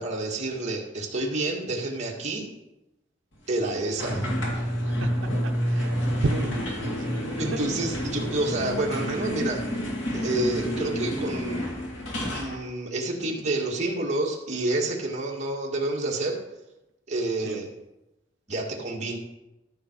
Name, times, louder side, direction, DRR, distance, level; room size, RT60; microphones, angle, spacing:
voice 1, 0.0-2.5 3.5-4.3 7.4-9.6 10.1-11.7 12.3-16.4 17.1-17.7 18.5-19.2, right 2 dB, 35° right, -2 dB, 2.1 m, -29 dB
sound 1, 4.0-12.6, equal, 75° left, 2.4 m, -29 dB
voice 2, 4.5-7.6 17.4-17.6, right 2 dB, 80° right, 4 dB, 0.7 m, -34 dB
14.0 x 6.2 x 4.7 m, 0.95 s
head